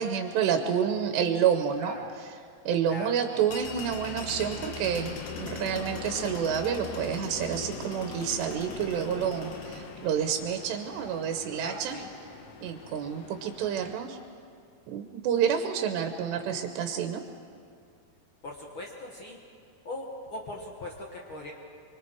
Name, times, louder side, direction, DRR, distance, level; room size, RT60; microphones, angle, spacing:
voice 1, 0.0-2.3 2.7-12.0 12.6-14.2 14.9-17.2, right 8 dB, 85° right, 5 dB, 3.1 m, -29 dB
voice 2, 2.8-3.4 11.5-12.1 18.4-19.4 19.8-21.5, left 1 dB, 70° left, -1 dB, 1.2 m, -40 dB
sound 1, 3.5-13.9, left 5 dB, 85° left, 1.3 m, -40 dB
25.5 x 23.5 x 4.6 m, 2.3 s
omnidirectional pair, 4.8 m